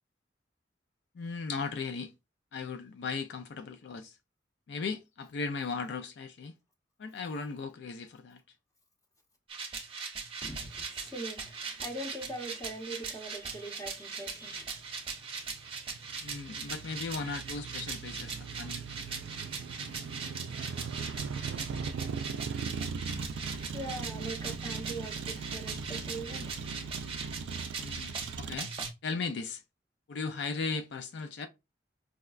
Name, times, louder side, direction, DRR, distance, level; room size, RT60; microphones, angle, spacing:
voice 1, 1.2-2.1 2.5-4.1 4.7-6.5 7.0-8.4 16.2-18.8 27.8-28.7 29.0-29.6 30.1-31.5, left 4 dB, 70° left, 0.3 m, -37 dB
sound 1, 9.5-28.9, right 5 dB, 30° right, 0.6 m, -40 dB
voice 2, 10.4-14.6 23.4-26.7, right 1 dB, 20° left, 0.7 m, -42 dB
Motor vehicle (road), 14.5-28.6, right 5 dB, 85° right, 0.3 m, -39 dB
4.7 x 2.1 x 2.3 m
head